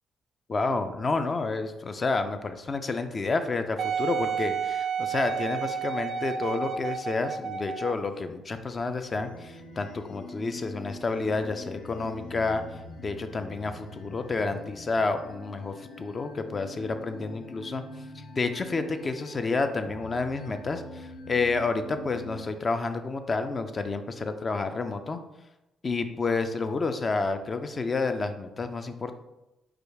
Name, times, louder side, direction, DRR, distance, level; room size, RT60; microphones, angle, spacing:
voice 1, 0.5-12.6 13.0-17.8 18.1-25.2 25.8-29.2, left 3 dB, 35° left, 8 dB, 0.4 m, -30 dB
Wind instrument woodwind instrument, 3.8-8.1 8.8-8.9, right 7 dB, 60° right, 0.4 m, -31 dB
sound 1, 9.1-22.5, left 2 dB, 75° left, 0.7 m, -44 dB
5.0 x 2.3 x 4.6 m, 0.96 s
cardioid pair, 90°, 0 cm